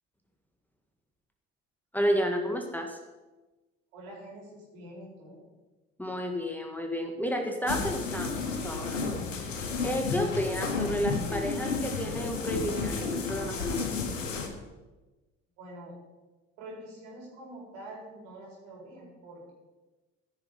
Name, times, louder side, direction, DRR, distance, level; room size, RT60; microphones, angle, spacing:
voice 1, 1.9-3.0 6.0-9.0 9.4-9.6 9.8-14.0, equal, 5° left, 3 dB, 1.7 m, -31 dB
voice 2, 3.9-5.4 15.6-15.9 16.6-19.5, right 1 dB, 70° right, -3 dB, 4.4 m, -46 dB
sound 1, 7.7-14.5, left 4 dB, 90° left, 1.3 m, -32 dB
14.0 x 6.4 x 5.3 m, 1.2 s
hypercardioid pair, 60°, 37 cm